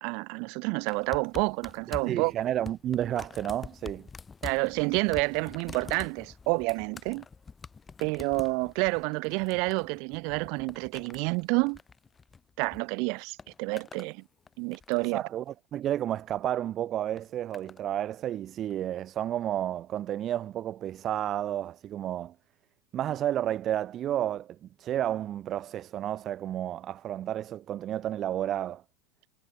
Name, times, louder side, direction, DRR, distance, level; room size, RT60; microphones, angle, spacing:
voice 1, 0.0-2.3 4.4-7.2 8.0-11.8 12.6-14.2 14.6-15.2, right 33 dB, 55° right, 1.2 m, -29 dB
sound 1, 0.9-12.8 13.1-14.1 14.5-15.2 16.1-16.4 17.2-17.8 18.7-18.8, left 5 dB, 15° left, 1.4 m, -46 dB
voice 2, 2.1-4.1 15.0-22.3 22.9-28.8, right 11 dB, 35° right, 0.5 m, -31 dB
supercardioid pair, 140°, 0 cm